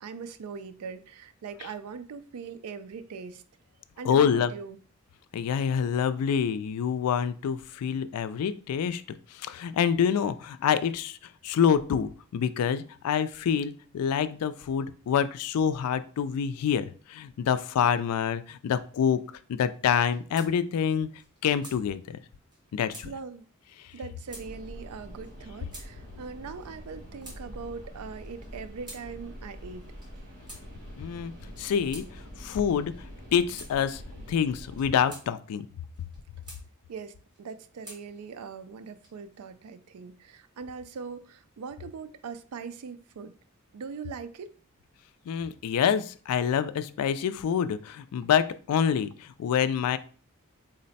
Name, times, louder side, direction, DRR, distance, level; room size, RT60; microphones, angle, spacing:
voice 1, 0.0-3.4 4.0-4.8 23.0-23.5 23.9-30.3 36.9-43.3 43.7-44.6, right 5 dB, 80° right, 0.4 m, -41 dB
voice 2, 4.0-4.5 5.3-9.0 9.3-11.2 11.4-19.2 19.5-21.1 21.4-22.2 22.7-23.1 31.0-31.3 31.6-32.1 32.4-33.0 33.3-34.0 34.3-35.7 45.3-50.0, left 7 dB, 85° left, 0.3 m, -26 dB
sound 1, 19.9-20.5 20.8-20.9 21.2-21.8 22.5-22.6 22.9-23.1 23.9-24.0 24.3-24.5 25.2-25.3 25.7-25.9 26.6-27.4 28.2-29.0 29.8-30.1 30.5-30.6 31.4-32.1 32.9-33.1 33.5-33.7 34.6-35.3 35.9-36.6 37.3-38.0 38.8-39.3, right 1 dB, 20° right, 1.1 m, -47 dB
sound 2, 24.2-34.8, equal, 35° right, 1.7 m, -45 dB
3.9 x 2.1 x 4.0 m
head